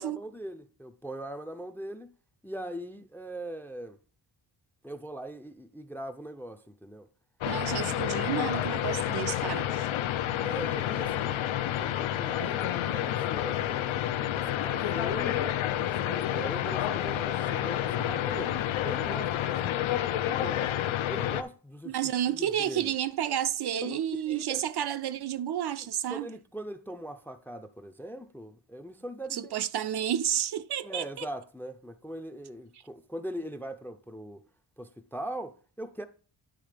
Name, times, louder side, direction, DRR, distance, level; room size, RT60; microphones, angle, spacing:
voice 1, 0.0-2.1 2.4-4.0 4.8-7.1 7.6-7.8 10.4-11.5 11.8-14.0 14.3-19.9 20.2-20.7 21.1-22.0 22.3-22.9 23.7-24.6 25.8-29.6 30.8-34.4 34.8-36.0, right 1 dB, 5° left, 0.4 m, -41 dB
sound 1, 7.4-21.4, left 12 dB, 85° left, 0.6 m, -29 dB
voice 2, 7.5-9.9 21.9-26.3 29.3-31.3, right 10 dB, 60° right, 0.5 m, -31 dB
10.0 x 3.6 x 5.0 m
wide cardioid pair, 125°, 46 cm